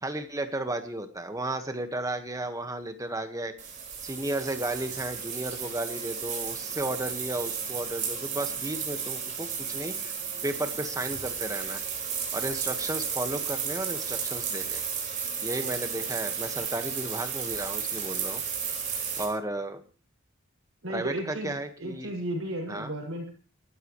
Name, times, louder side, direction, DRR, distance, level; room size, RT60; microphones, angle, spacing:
voice 1, 0.0-3.5 4.0-10.1 10.4-11.8 12.3-14.8 15.4-18.4 19.2-19.8 20.9-22.1 22.7-22.9, right 1 dB, 15° right, 7 dB, 1.6 m, -33 dB
sound 1, 3.6-19.3, right 6 dB, 40° right, 5.0 m, -33 dB
voice 2, 20.8-23.3, right 1 dB, 70° right, 1 dB, 6.5 m, -34 dB
28.5 x 13.0 x 3.2 m, 0.37 s
head